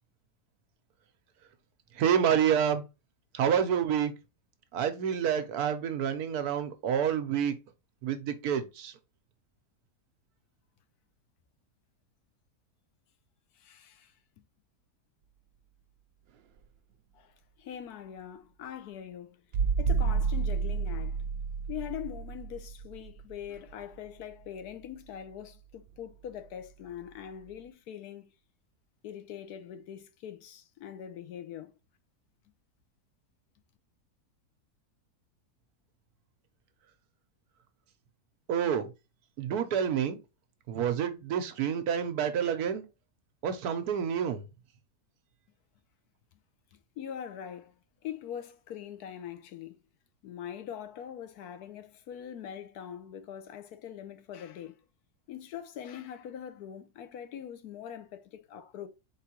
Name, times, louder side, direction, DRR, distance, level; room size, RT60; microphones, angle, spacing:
voice 1, 2.0-2.8 3.3-4.1 4.7-7.5 8.0-8.9 38.5-38.9 39.4-40.2 40.7-42.8 43.4-44.4, right 8 dB, 70° right, 1.2 m, -28 dB
voice 2, 13.6-14.1 17.1-17.3 17.6-19.4 19.8-21.2 21.7-28.2 29.0-31.7 47.0-47.7 48.0-49.8 50.2-54.7 55.3-58.9, left 9 dB, 75° left, 1.2 m, -42 dB
sound 1, 19.5-24.1 25.9-26.0, right 5 dB, 90° right, 0.5 m, -30 dB
4.5 x 3.7 x 2.8 m
omnidirectional pair, 1.7 m